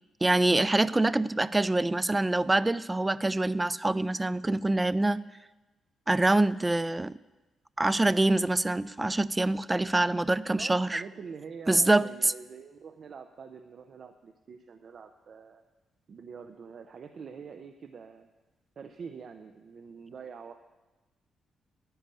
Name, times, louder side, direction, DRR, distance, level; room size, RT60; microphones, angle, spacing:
voice 1, 0.2-5.2 6.1-7.2 7.8-11.0 11.7-12.1, right 2 dB, 15° right, 18 dB, 0.3 m, -25 dB
voice 2, 10.4-15.6 16.1-18.3 18.8-20.5, right 6 dB, 50° right, 8 dB, 0.6 m, -45 dB
10.0 x 10.0 x 6.9 m, 1.1 s
cardioid pair, 120°, 0 cm